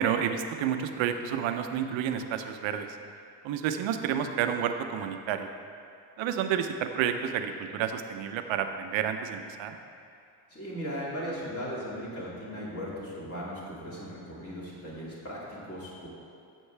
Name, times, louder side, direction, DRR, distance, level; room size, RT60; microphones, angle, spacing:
voice 1, 0.0-3.0 3.4-5.5 6.2-9.8, right 8 dB, 65° right, 7 dB, 0.8 m, -30 dB
voice 2, 10.5-16.1, equal, 30° left, -7 dB, 2.3 m, -37 dB
12.0 x 7.7 x 3.4 m, 2.4 s
cardioid pair, 125°, 50 cm